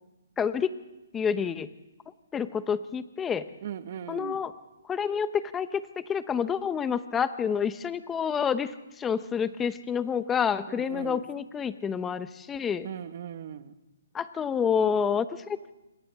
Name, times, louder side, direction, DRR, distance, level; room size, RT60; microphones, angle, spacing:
voice 1, 0.4-0.7 1.1-1.7 2.3-3.4 4.1-4.5 4.9-5.8 6.1-8.7 9.0-12.9 14.1-15.7, left 7 dB, 15° left, 12 dB, 1.0 m, -28 dB
voice 2, 3.6-4.4 10.7-11.2 12.8-13.7, right 9 dB, 50° right, 9 dB, 1.6 m, -38 dB
28.0 x 25.5 x 3.7 m, 1.0 s
hypercardioid pair, 145°, 0 cm